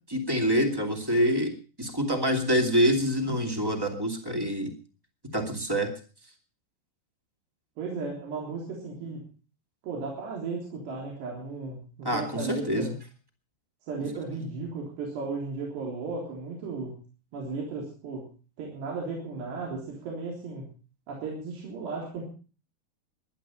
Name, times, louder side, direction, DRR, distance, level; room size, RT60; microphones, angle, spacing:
voice 1, 0.1-4.7 5.3-5.9 12.0-12.9, equal, 10° right, 4 dB, 1.2 m, -26 dB
voice 2, 7.8-9.2 9.8-12.9 13.9-17.0 17.3-18.2 18.6-20.7 21.1-22.2, right 4 dB, 85° right, -2 dB, 5.8 m, -35 dB
19.0 x 11.5 x 5.6 m, 0.38 s
omnidirectional pair, 4.8 m